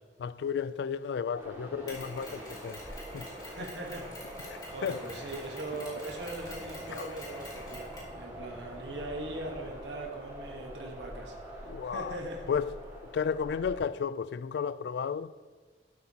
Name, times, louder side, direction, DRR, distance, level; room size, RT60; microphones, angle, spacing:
voice 1, 0.2-2.8 3.1-3.3 4.5-5.0 6.9-7.1 11.7-12.2 12.5-12.7 13.1-15.3, left 6 dB, 70° left, 0.3 m, -33 dB
sound 1, 1.3-13.8, equal, 15° right, 1.7 m, -45 dB
Mechanisms, 1.9-8.2, left 1 dB, 25° left, 2.5 m, -47 dB
voice 2, 3.4-4.3 4.6-12.5, right 2 dB, 80° right, 1.3 m, -40 dB
sound 2, 4.6-9.7, equal, 55° right, 1.8 m, -55 dB
12.0 x 7.9 x 2.9 m
head